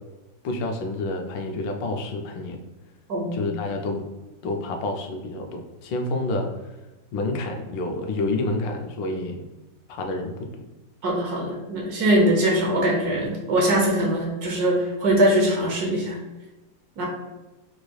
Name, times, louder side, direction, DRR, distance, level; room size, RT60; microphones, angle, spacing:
voice 1, 0.4-2.6 3.3-4.0 4.4-6.5 7.1-9.4 9.9-10.6, left 2 dB, 90° left, 3 dB, 1.3 m, -28 dB
voice 2, 11.0-16.2 17.0-17.1, right 1 dB, 65° right, -1 dB, 1.3 m, -22 dB
4.8 x 3.1 x 2.3 m, 1.1 s
omnidirectional pair, 2.0 m